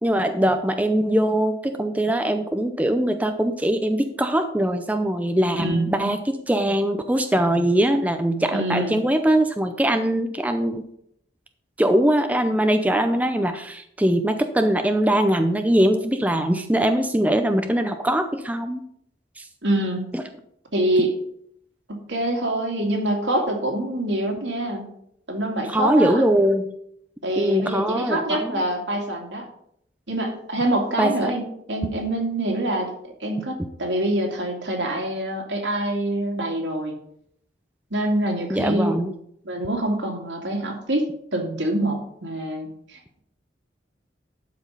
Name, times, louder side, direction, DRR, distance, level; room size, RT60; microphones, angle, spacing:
voice 1, 0.0-10.8 11.8-18.8 19.4-19.5 20.1-20.2 25.7-26.7 27.4-28.6 31.0-31.3 38.5-39.1, right 1 dB, 10° right, 7 dB, 0.6 m, -22 dB
voice 2, 5.6-6.1 8.5-9.0 19.6-20.1 20.7-21.1 21.9-24.9 25.3-26.2 27.2-29.4 30.1-36.9 37.9-38.9 39.4-43.2, right 1 dB, 85° right, 1 dB, 2.4 m, -25 dB
12.0 x 5.2 x 5.3 m, 0.70 s
head